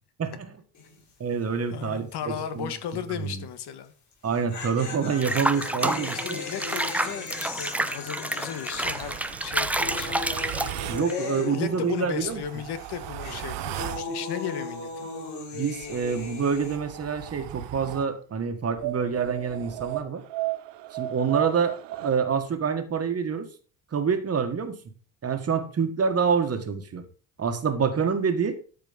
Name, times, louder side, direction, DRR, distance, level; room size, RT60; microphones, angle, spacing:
voice 1, 0.2-0.5 1.2-2.7 3.2-3.4 4.2-6.4 10.9-12.4 15.5-20.2 20.9-23.5 23.9-24.8 25.2-27.1 27.4-28.6, right 6 dB, 35° right, 1.6 m, -27 dB
sound 1, 0.7-1.1 1.4-1.5 4.1-12.5 12.7-16.8, left 4 dB, 45° left, 6.1 m, -37 dB
voice 2, 1.7-3.9 6.2-9.1 9.4-10.2 11.0-15.1, left 9 dB, 65° left, 1.6 m, -35 dB
Water / Bathtub (filling or washing), 5.2-11.1, right 1 dB, 5° right, 0.4 m, -29 dB
sound 2, 8.7-11.1 12.1-14.1 15.7-18.1 18.8-22.2, right 16 dB, 85° right, 0.8 m, -36 dB
13.0 x 5.1 x 5.3 m
cardioid pair, 145°, 41 cm